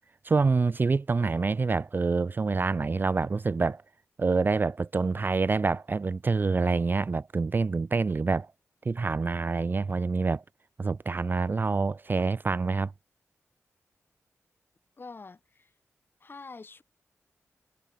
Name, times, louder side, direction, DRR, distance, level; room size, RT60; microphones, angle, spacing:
voice 1, 0.2-3.8 4.2-8.5 8.9-10.4 10.8-12.9, right 4 dB, 40° right, 0.4 m, -26 dB
voice 2, 15.0-15.7 16.2-16.8, left 4 dB, 45° left, 1.5 m, -45 dB
cardioid pair, 65°, 5 cm